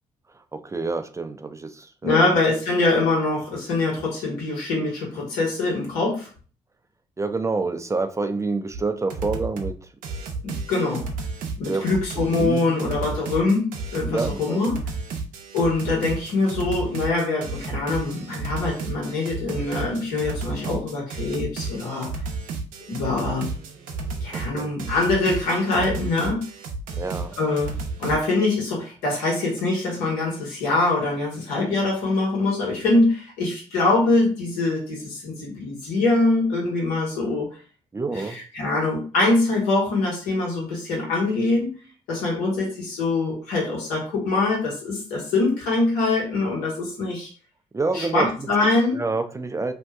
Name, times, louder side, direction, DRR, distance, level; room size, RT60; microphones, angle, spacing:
voice 1, 0.5-2.2 7.2-9.8 11.6-11.9 12.1-12.8 14.1-14.7 24.3-24.7 27.0-27.3 37.9-38.4 47.7-48.5 48.9-49.7, right 3 dB, 20° right, 8 dB, 0.4 m, -27 dB
voice 2, 2.0-6.3 10.4-11.1 11.6-14.7 15.5-22.1 22.9-23.5 24.2-26.5 27.4-27.7 28.0-37.5 38.1-41.7 42.1-47.3 47.9-49.0, left 2 dB, 85° left, -2 dB, 1.3 m, -23 dB
sound 1, 8.7-8.8 9.1-9.7 10.0-28.2, right 4 dB, 80° right, 0.6 m, -32 dB
2.7 x 2.2 x 3.4 m, 0.39 s
supercardioid pair, 60°, 14 cm